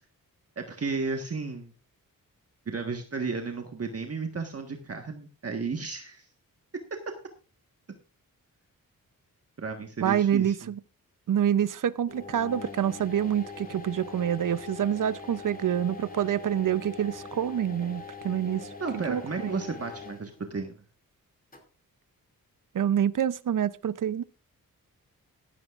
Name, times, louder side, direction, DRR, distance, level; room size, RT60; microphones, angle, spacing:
voice 1, 0.6-1.7 2.7-6.3 9.6-10.7 18.8-20.8, right 4 dB, 40° right, 4 dB, 1.5 m, -33 dB
voice 2, 10.0-10.8 11.3-18.7 19.1-19.5 22.7-24.2, right 9 dB, 60° right, 17 dB, 0.7 m, -27 dB
sound 1, 12.1-20.4 21.5-21.6, left 4 dB, 25° left, 2.6 m, -42 dB
14.5 x 13.0 x 2.5 m, 0.35 s
cardioid pair, 65°, 36 cm